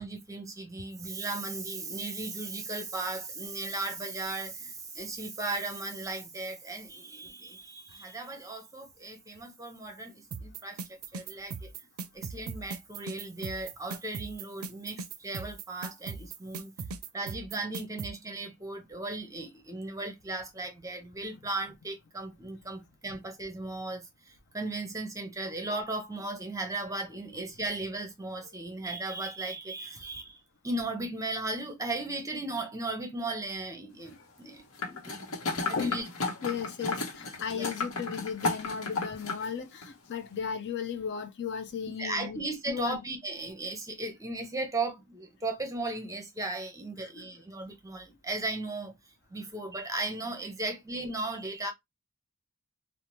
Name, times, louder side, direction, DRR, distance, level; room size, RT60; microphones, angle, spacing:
voice 1, 0.0-10.8 11.1-11.7 12.1-16.7 17.1-30.4 30.6-36.1 37.5-37.7 42.0-48.9 49.3-51.7, right 2 dB, 15° right, 0.6 m, -36 dB
sound 1, 10.3-18.1, right 4 dB, 85° right, 0.4 m, -38 dB
sound 2, 34.8-39.4 39.8-39.9, left 3 dB, 85° left, 0.9 m, -33 dB
voice 2, 36.4-43.0 47.0-47.3, left 6 dB, 55° left, 0.5 m, -35 dB
2.8 x 2.1 x 3.0 m
head